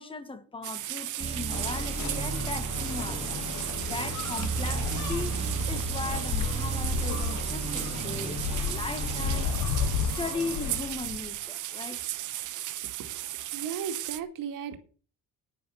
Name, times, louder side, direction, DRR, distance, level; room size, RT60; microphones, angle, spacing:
voice 1, 0.0-3.5 3.8-12.0, left 3 dB, 15° left, 1.3 m, -38 dB
sound 1, 0.6-14.2, right 14 dB, 65° right, 1.0 m, -36 dB
sound 2, 1.2-9.4, right 5 dB, 20° right, 1.0 m, -34 dB
sound 3, 1.5-11.4, left 7 dB, 60° left, 1.2 m, -34 dB
voice 2, 12.8-14.8, right 7 dB, 80° right, 2.3 m, -37 dB
10.5 x 9.8 x 6.9 m
cardioid pair, 180°, 33 cm